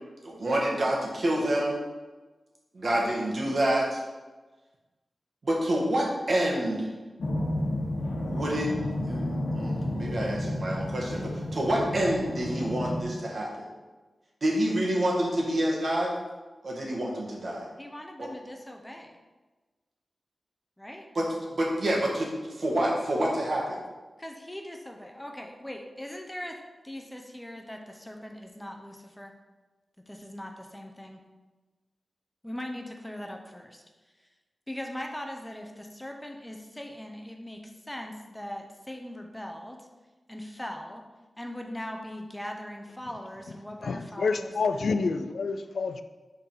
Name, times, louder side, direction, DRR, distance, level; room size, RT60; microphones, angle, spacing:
voice 1, 0.2-1.8 2.7-4.0 5.4-6.9 8.3-8.7 9.1-9.2 9.5-13.6 14.4-16.1 16.6-17.7 18.2-18.3 21.1-21.2 21.5-22.3 22.6-23.8, right 1 dB, 55° right, -3 dB, 1.6 m, -27 dB
sound 1, 7.2-13.0, left 1 dB, 65° left, 1.1 m, -31 dB
voice 2, 17.8-19.1 20.8-21.1 24.2-26.6 26.8-29.3 30.1-31.2 32.4-33.8 34.7-39.9 40.3-41.0 41.4-44.8, left 1 dB, 10° left, 3 dB, 0.6 m, -40 dB
voice 3, 43.8-46.0, left 4 dB, 90° left, 9 dB, 0.3 m, -28 dB
5.2 x 4.0 x 5.4 m, 1.2 s
wide cardioid pair, 110°, 0 cm